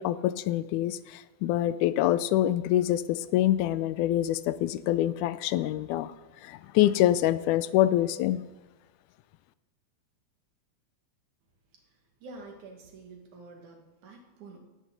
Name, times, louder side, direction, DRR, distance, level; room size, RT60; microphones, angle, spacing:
voice 1, 0.0-6.1 6.4-8.4, left 13 dB, 85° left, 15 dB, 2.0 m, -25 dB
voice 2, 12.2-14.6, right 3 dB, 75° right, 2 dB, 3.3 m, -48 dB
16.5 x 13.0 x 4.0 m, 1.2 s
omnidirectional pair, 3.5 m